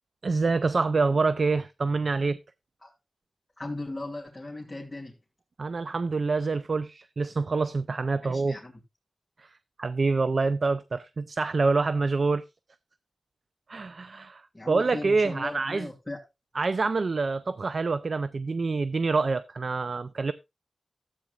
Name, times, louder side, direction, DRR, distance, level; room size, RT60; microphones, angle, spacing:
voice 1, 0.2-2.4 5.6-8.6 9.4-12.4 13.7-15.9 16.6-20.3, right 4 dB, 60° right, 0.4 m, -26 dB
voice 2, 3.6-5.1 8.2-8.7 14.5-16.2, left 2 dB, 15° left, 2.4 m, -37 dB
13.5 x 8.5 x 2.4 m
wide cardioid pair, 70°, 0 cm